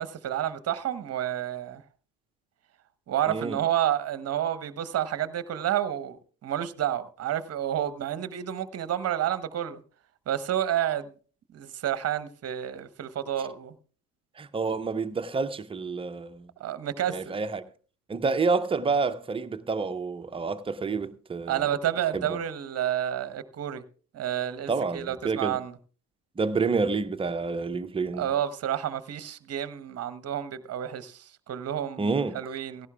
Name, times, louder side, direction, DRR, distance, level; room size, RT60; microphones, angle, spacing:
voice 1, 0.0-1.8 3.1-9.8 10.3-11.1 11.5-13.7 16.6-17.2 21.5-23.8 24.1-25.7 28.2-32.9, right 11 dB, 30° right, 0.9 m, -30 dB
voice 2, 3.3-3.6 13.4-13.5 14.4-16.5 17.1-17.6 18.1-21.7 22.1-22.4 24.7-25.6 26.4-28.3 32.0-32.4, right 4 dB, 10° right, 0.6 m, -28 dB
16.5 x 15.5 x 2.3 m
figure-of-eight pair, 60°, 50 cm